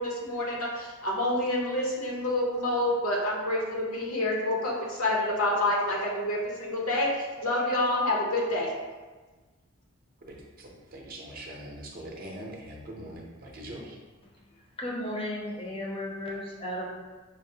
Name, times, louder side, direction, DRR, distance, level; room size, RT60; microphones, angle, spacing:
voice 1, 0.0-8.7, left 1 dB, 75° left, -3 dB, 0.9 m, -28 dB
voice 2, 10.3-14.0, right 1 dB, 40° right, -2 dB, 0.6 m, -42 dB
voice 3, 14.8-16.9, left 1 dB, 25° left, -2 dB, 0.6 m, -34 dB
5.7 x 2.0 x 2.7 m, 1.3 s
head